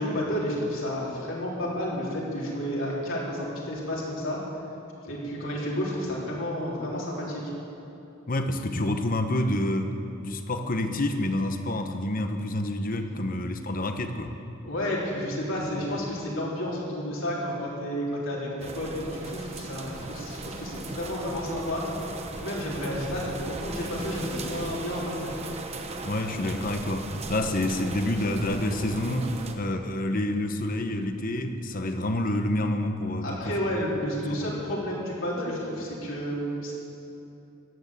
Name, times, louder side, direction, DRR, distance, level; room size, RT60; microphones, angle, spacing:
voice 1, 0.0-4.4 5.0-7.4 14.6-21.8 22.4-25.3 33.2-36.7, equal, 70° left, -4 dB, 3.8 m, -31 dB
voice 2, 8.3-9.9 10.2-14.3 26.0-33.6 34.3-34.4, left 1 dB, 45° left, 7 dB, 1.0 m, -28 dB
sound 1, 18.6-29.5, right 2 dB, 30° right, 1.0 m, -37 dB
14.0 x 9.8 x 8.2 m, 2.9 s
head